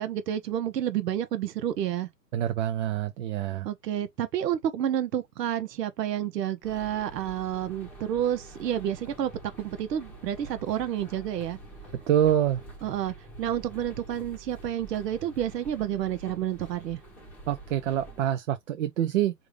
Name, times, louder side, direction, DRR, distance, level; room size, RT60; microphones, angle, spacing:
voice 1, 0.0-2.1 3.6-9.3 9.6-11.6 12.8-17.0, right 10 dB, 75° right, 0.8 m, -30 dB
voice 2, 2.3-3.7 12.1-12.6 17.5-19.3, right 11 dB, 50° right, 0.5 m, -26 dB
sound 1, 6.6-18.3, right 2 dB, 5° left, 0.9 m, -46 dB
3.5 x 2.5 x 3.2 m
hypercardioid pair, 140°, 49 cm